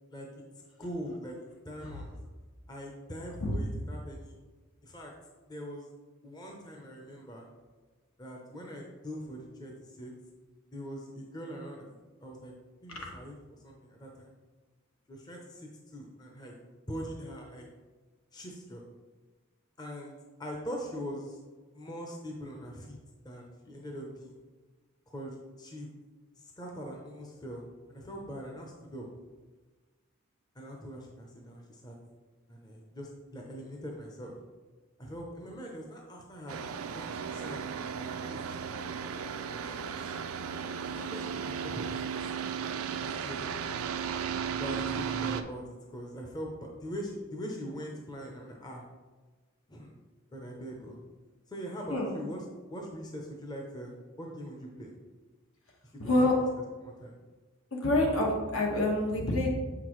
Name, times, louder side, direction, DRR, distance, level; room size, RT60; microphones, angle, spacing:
voice 1, 0.8-1.4 1.6-2.1 2.7-4.3 4.8-5.1 5.5-5.9 6.2-7.5 8.2-10.1 10.7-11.8 12.2-12.5 12.8-14.3 15.1-16.6 16.9-17.6 18.3-18.8 19.8-21.4 21.7-23.0 23.2-24.4 25.1-25.9 26.4-29.1 30.5-31.9 32.5-34.4 35.0-36.6 36.9-38.4 39.5-40.0 40.9-42.1 43.0-43.5 44.6-48.8 49.7-50.0 50.3-51.0 51.5-52.4 52.7-54.9 55.9-56.3 56.8-57.1, equal, 20° left, 0 dB, 0.7 m, -42 dB
sound 1, 36.5-45.4, right 7 dB, 75° right, 0.4 m, -35 dB
voice 2, 56.0-56.4 57.7-59.5, left 1 dB, 70° left, -1 dB, 1.4 m, -27 dB
7.1 x 5.9 x 3.1 m, 1.3 s
head